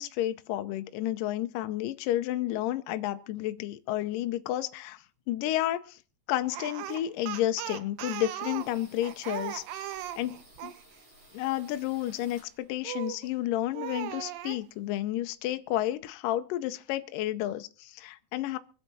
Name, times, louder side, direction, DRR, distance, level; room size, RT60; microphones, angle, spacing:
voice 1, 0.0-6.0 6.3-10.7 11.3-18.6, left 13 dB, 75° left, 2.1 m, -31 dB
Speech, 6.5-10.8 12.8-13.3 13.7-14.6, right 12 dB, 75° right, 2.3 m, -38 dB
sound 1, 8.6-13.0 13.3-14.7 15.0-15.1 15.3-16.0, right 1 dB, 40° right, 6.2 m, -57 dB
24.0 x 8.1 x 4.1 m
omnidirectional pair, 4.5 m